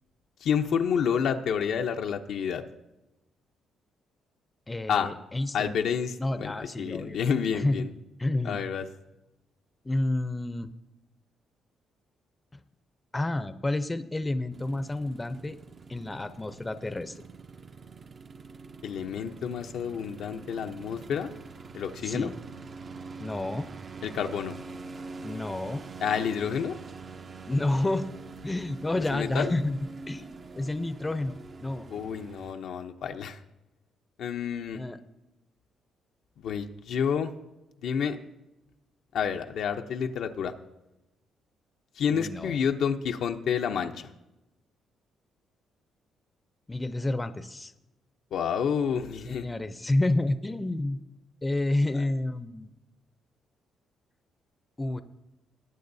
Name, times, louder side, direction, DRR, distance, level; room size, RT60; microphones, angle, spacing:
voice 1, 0.4-2.6 4.9-5.1 5.5-7.9 8.4-8.8 18.8-21.3 21.7-22.3 24.0-24.5 26.0-26.8 29.1-29.5 31.9-33.4 34.2-34.8 36.4-37.3 37.8-38.2 39.1-40.5 42.0-44.1 48.3-49.5, left 7 dB, 75° left, 5 dB, 0.7 m, -29 dB
voice 2, 4.7-5.8 6.2-7.2 7.5-7.9 8.2-8.6 9.8-10.7 13.1-15.6 15.9-17.2 22.0-22.3 23.2-23.7 25.2-25.8 27.5-28.1 28.4-29.8 30.1-31.3 31.6-31.9 34.7-35.0 42.1-42.6 46.7-47.7 49.2-51.0 51.4-52.7 54.8-55.0, left 2 dB, 20° left, 11 dB, 0.6 m, -29 dB
sound 1, 14.5-32.5, right 4 dB, 40° right, 0.6 m, -45 dB
18.5 x 8.8 x 2.7 m, 0.96 s
cardioid pair, 90°, 0 cm